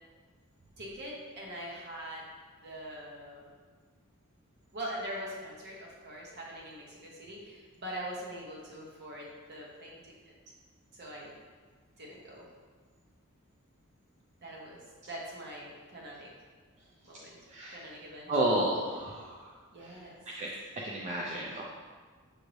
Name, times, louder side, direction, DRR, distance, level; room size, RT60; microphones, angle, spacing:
voice 1, 0.8-2.2 2.6-3.5 4.7-10.3 10.9-11.3 12.0-12.5 14.4-16.3 17.0-17.4 17.7-18.3 19.7-20.2, equal, 50° right, -3 dB, 1.0 m, -43 dB
voice 2, 17.5-17.8 18.3-19.5 19.8-19.9 20.3-20.5 20.8-21.6, right 1 dB, 30° right, -5 dB, 0.4 m, -31 dB
6.1 x 2.7 x 3.1 m, 1.5 s
head